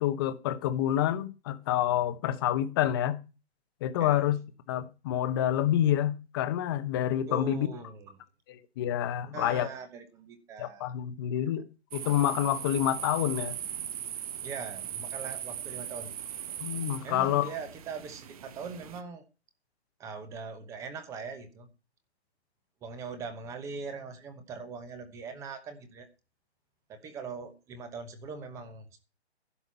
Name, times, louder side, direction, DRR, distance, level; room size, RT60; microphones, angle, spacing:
voice 1, 0.0-3.2 3.8-4.4 4.7-7.7 8.5-9.7 10.6-11.7 11.9-13.5 16.6-17.5, left 11 dB, 20° left, 0.9 m, -28 dB
voice 2, 7.3-8.2 9.3-10.9 11.3-11.5 14.4-16.2 17.0-19.2 20.0-21.7 22.8-26.1 26.9-29.0, right 5 dB, 10° right, 0.9 m, -41 dB
sound 1, 11.9-19.0, right 10 dB, 35° right, 1.0 m, -39 dB
11.5 x 5.9 x 8.3 m
hypercardioid pair, 160°, 33 cm